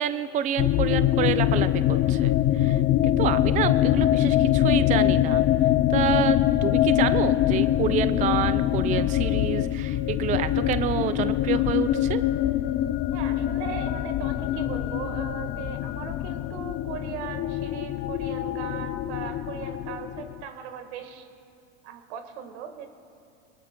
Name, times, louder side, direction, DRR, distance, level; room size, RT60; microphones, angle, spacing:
voice 1, 0.0-5.4 5.9-12.2, right 9 dB, 20° right, 12 dB, 0.4 m, -28 dB
sound 1, 0.6-20.4, left 13 dB, 35° left, 0.4 m, -24 dB
voice 2, 13.1-21.3 21.8-22.9, right 7 dB, 70° right, 8 dB, 1.5 m, -38 dB
25.5 x 19.5 x 2.2 m, 2.6 s
hypercardioid pair, 95°, 34 cm